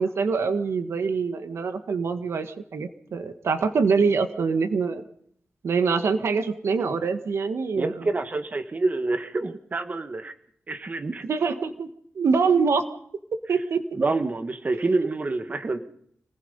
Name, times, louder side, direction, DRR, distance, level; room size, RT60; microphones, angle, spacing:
voice 1, 0.0-5.0 5.6-7.9 11.3-11.9 12.2-12.8 13.5-13.8, right 5 dB, 80° right, 9 dB, 1.7 m, -24 dB
voice 2, 7.8-10.4 10.7-11.3 13.5-13.6 13.9-15.8, right 3 dB, 35° right, 9 dB, 1.6 m, -27 dB
27.0 x 19.5 x 5.4 m, 0.67 s
wide cardioid pair, 110°, 4 cm